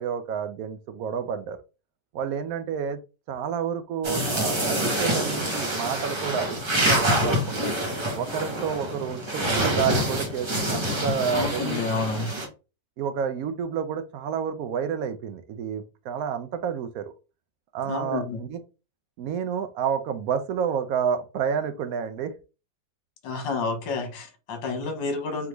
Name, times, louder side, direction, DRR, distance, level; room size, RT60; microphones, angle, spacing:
voice 1, 0.0-1.6 2.1-3.0 3.3-7.7 8.1-11.8 13.0-17.1 17.7-18.6 19.2-22.3, right 7 dB, 75° right, 0.8 m, -29 dB
sound 1, 4.0-12.5, equal, 30° right, 0.5 m, -26 dB
voice 2, 11.3-12.3 17.9-18.4 23.2-25.5, left 4 dB, 70° left, 1.6 m, -29 dB
3.8 x 3.4 x 3.0 m
omnidirectional pair, 2.0 m